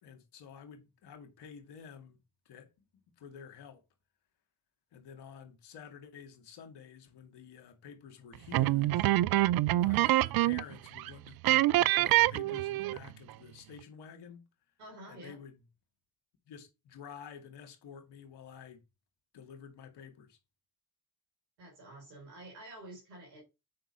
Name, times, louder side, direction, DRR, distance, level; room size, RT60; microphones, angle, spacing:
voice 1, 0.0-2.2 2.5-3.8 4.9-9.1 9.7-14.4 15.1-15.6 16.5-18.8 19.3-20.4, left 7 dB, 70° left, 2.3 m, -50 dB
sound 1, 8.5-10.7 11.0-11.1 11.4-13.1, right 16 dB, 60° right, 0.5 m, -26 dB
voice 2, 14.8-15.4 21.6-23.4, right 1 dB, 80° right, 4.2 m, -49 dB
7.7 x 5.4 x 5.3 m
hypercardioid pair, 50°, 42 cm